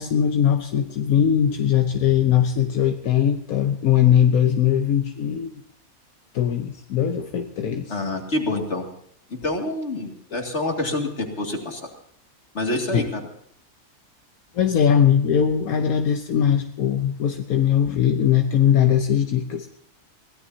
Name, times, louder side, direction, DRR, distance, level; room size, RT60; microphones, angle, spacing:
voice 1, 0.0-5.6 6.3-7.9 12.9-13.1 14.5-19.7, left 9 dB, 80° left, 6 dB, 1.3 m, -20 dB
voice 2, 7.9-8.9 9.3-11.9 12.5-13.2, left 2 dB, 50° left, 2 dB, 2.6 m, -27 dB
23.0 x 16.5 x 2.8 m, 0.66 s
omnidirectional pair, 1.5 m